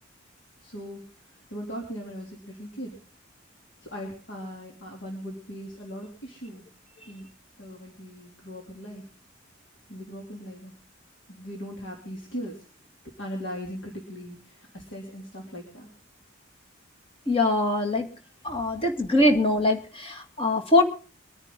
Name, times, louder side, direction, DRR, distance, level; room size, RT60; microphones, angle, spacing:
voice 1, 0.6-1.0 1.5-2.9 3.8-6.6 7.1-7.3 7.6-9.0 9.9-10.7 11.3-12.6 13.2-15.9 18.5-18.7, equal, 70° left, -1 dB, 3.3 m, -39 dB
voice 2, 17.3-18.1 18.4-20.8, left 1 dB, 30° left, 2 dB, 2.1 m, -22 dB
23.5 x 9.9 x 3.9 m, 0.38 s
head